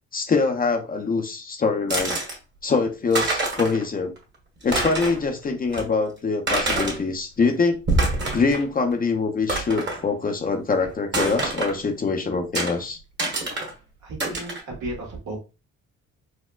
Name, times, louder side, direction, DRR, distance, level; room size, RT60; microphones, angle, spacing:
voice 1, 0.1-2.2 2.6-4.1 4.6-7.8 8.3-13.0, left 4 dB, 30° left, 0.5 m, -24 dB
sound 1, 1.9-2.3 2.8-2.9 3.1-3.8 4.2-4.3 4.6-5.2 5.7-5.8 6.5-7.0 7.7-8.7 8.9-9.0 9.5-10.0 11.1-11.8 12.5-12.7 13.2-13.7 14.2-14.6, right 2 dB, 35° right, 1.3 m, -25 dB
voice 2, 14.1-14.5 14.8-15.4, right 2 dB, 70° right, 1.5 m, -33 dB
4.2 x 2.1 x 2.2 m
cardioid pair, 90°, 30 cm